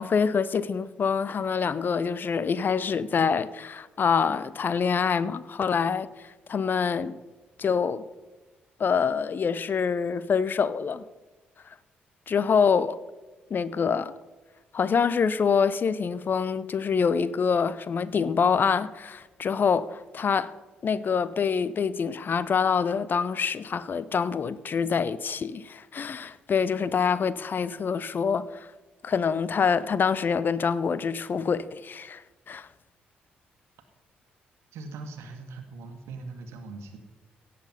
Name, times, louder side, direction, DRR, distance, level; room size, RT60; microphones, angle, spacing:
voice 1, 0.0-6.1 6.5-7.1 7.6-8.0 8.8-11.0 12.3-13.0 13.5-14.1 14.7-20.5 20.8-28.7 29.0-32.2 32.5-32.7, left 6 dB, 40° left, 0.6 m, -25 dB
voice 2, 34.7-37.0, right 3 dB, 60° right, 1.5 m, -40 dB
17.0 x 6.8 x 5.6 m
figure-of-eight pair, 40°, 5 cm